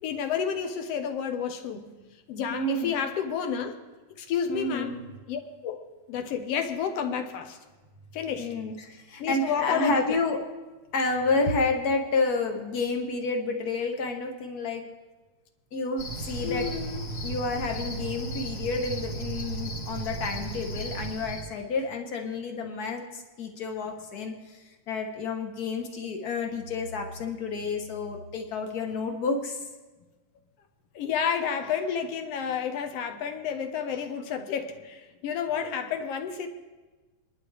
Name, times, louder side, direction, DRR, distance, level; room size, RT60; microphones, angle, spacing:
voice 1, 0.0-1.9 2.3-3.8 4.2-4.9 5.3-5.8 6.1-7.6 8.1-8.5 9.2-10.2 16.4-17.1 31.0-36.5, left 7 dB, 65° left, 6 dB, 1.9 m, -30 dB
voice 2, 2.5-2.9 4.5-5.0 8.4-10.4 10.9-14.8 15.7-16.7 17.2-29.6, left 3 dB, 85° left, 3 dB, 0.8 m, -30 dB
Cricket, 16.0-21.5, right 2 dB, 30° left, 2.6 m, -35 dB
29.0 x 11.0 x 3.3 m, 1.2 s
omnidirectional pair, 3.3 m